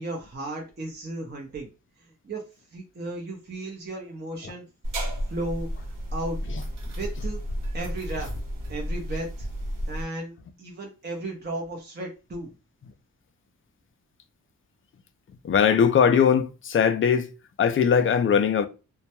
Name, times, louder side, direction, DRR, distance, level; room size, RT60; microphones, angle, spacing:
voice 1, 0.0-1.7 2.0-2.4 2.7-4.6 5.3-6.4 6.9-7.4 7.7-8.3 8.7-9.5 9.9-12.5, right 2 dB, 30° right, 0.6 m, -35 dB
sound 1, 4.8-10.0, equal, 90° right, 1.0 m, -32 dB
voice 2, 15.4-17.3 17.6-18.7, left 7 dB, 40° left, 0.4 m, -20 dB
2.2 x 2.1 x 2.8 m
cardioid pair, 65°, 32 cm